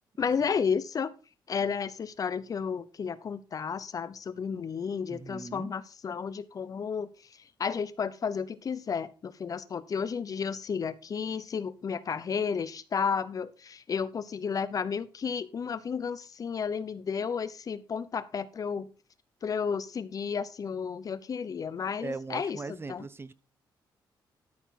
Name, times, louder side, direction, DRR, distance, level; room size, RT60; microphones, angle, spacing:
voice 1, 0.2-1.1 1.5-18.9 19.4-22.6 22.9-23.0, left 6 dB, 45° left, 16 dB, 0.9 m, -32 dB
voice 2, 5.1-5.7 22.0-23.3, right 3 dB, 30° right, 16 dB, 0.8 m, -39 dB
13.0 x 6.9 x 4.2 m, 0.32 s
cardioid pair, 100°, 8 cm